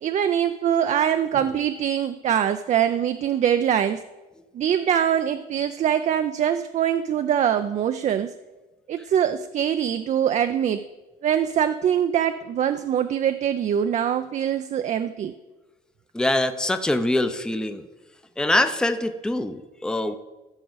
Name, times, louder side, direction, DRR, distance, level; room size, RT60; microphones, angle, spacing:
voice 1, 0.0-4.0 4.5-8.3 8.9-10.8 11.2-15.3, right 9 dB, 45° right, 9 dB, 0.4 m, -23 dB
voice 2, 16.1-17.9 18.4-20.2, left 1 dB, 5° left, 9 dB, 0.6 m, -24 dB
14.5 x 6.1 x 4.0 m, 1.2 s
cardioid pair, 110°, 17 cm